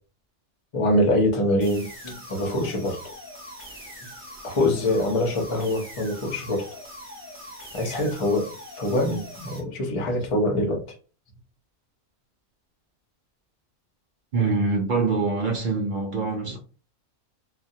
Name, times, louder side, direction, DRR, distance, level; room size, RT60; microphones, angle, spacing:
voice 1, 0.7-3.1 4.4-6.7 7.7-10.9 16.4-16.5, left 1 dB, 35° left, 0.5 m, -24 dB
sound 1, 1.6-9.6, equal, 15° right, 0.6 m, -42 dB
voice 2, 14.3-16.6, right 4 dB, 60° right, 0.5 m, -24 dB
2.2 x 2.1 x 2.7 m
omnidirectional pair, 1.3 m